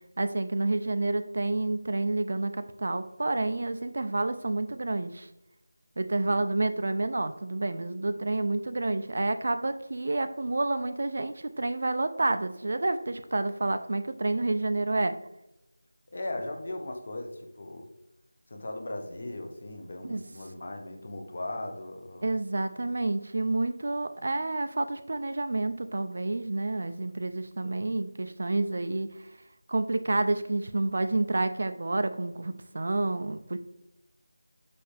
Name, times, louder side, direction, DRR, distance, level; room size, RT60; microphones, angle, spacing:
voice 1, 0.2-5.3 6.0-15.2 20.0-20.2 22.2-29.3 29.7-33.6, right 2 dB, 50° right, 10 dB, 0.4 m, -29 dB
voice 2, 16.1-17.9 18.5-22.3 27.7-27.8, left 2 dB, 40° left, 4 dB, 1.0 m, -38 dB
6.7 x 5.6 x 3.4 m, 0.87 s
figure-of-eight pair, 175°, 0 cm